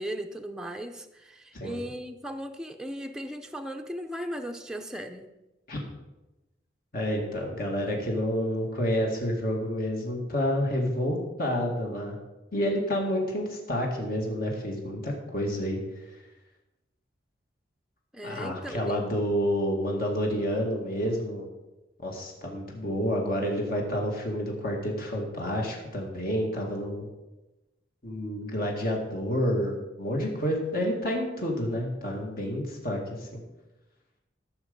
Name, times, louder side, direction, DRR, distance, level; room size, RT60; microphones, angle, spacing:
voice 1, 0.0-5.3 18.1-19.2, equal, 5° right, 4 dB, 0.6 m, -37 dB
voice 2, 6.9-12.2 12.5-15.8 18.2-21.5 22.0-27.1 28.0-33.4, equal, 55° left, 0 dB, 2.1 m, -29 dB
14.5 x 6.6 x 5.3 m, 1.0 s
head